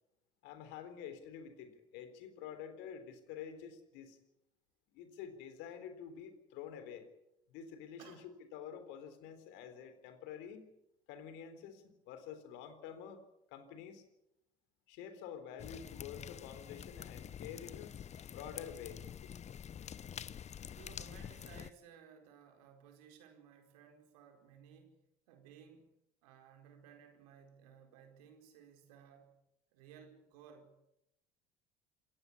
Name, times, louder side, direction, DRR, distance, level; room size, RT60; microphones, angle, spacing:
voice 1, 0.4-4.2 4.9-7.1 7.5-10.7 11.1-14.0 14.9-18.0 18.3-19.0, left 8 dB, 65° left, 10 dB, 3.8 m, -48 dB
sound 1, 15.6-21.7, left 9 dB, 35° left, 0.8 m, -47 dB
voice 2, 20.8-25.0 25.3-25.9 26.2-29.4 29.7-30.7, right 7 dB, 75° right, 4 dB, 4.6 m, -58 dB
27.5 x 15.0 x 8.5 m, 0.84 s
hypercardioid pair, 65°, 20 cm